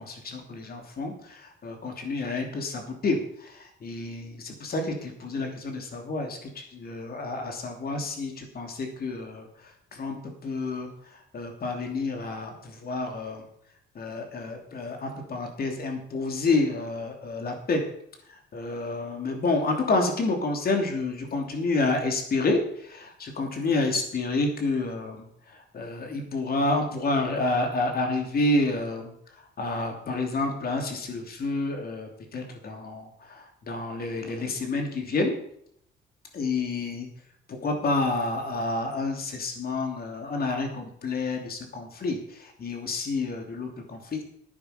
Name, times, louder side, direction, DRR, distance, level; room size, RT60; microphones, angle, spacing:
voice 1, 0.0-13.5 13.9-17.8 18.3-35.3 36.3-37.1 37.5-44.2, left 2 dB, 50° left, 3 dB, 3.0 m, -29 dB
11.5 x 9.4 x 5.2 m, 0.70 s
cardioid pair, 90°, 20 cm